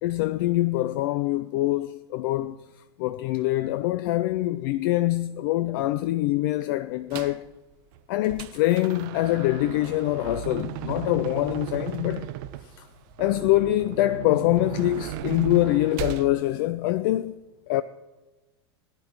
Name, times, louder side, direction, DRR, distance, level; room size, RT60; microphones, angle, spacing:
voice 1, 0.0-2.6 3.0-7.5 8.1-12.3 12.8-12.9 13.2-17.3 17.7-17.8, left 16 dB, 50° left, 0.5 m, -24 dB
sound 1, 7.1-7.5 7.9-16.3, right 14 dB, 50° right, 0.8 m, -36 dB
18.0 x 11.0 x 4.5 m
figure-of-eight pair, 90°, 14 cm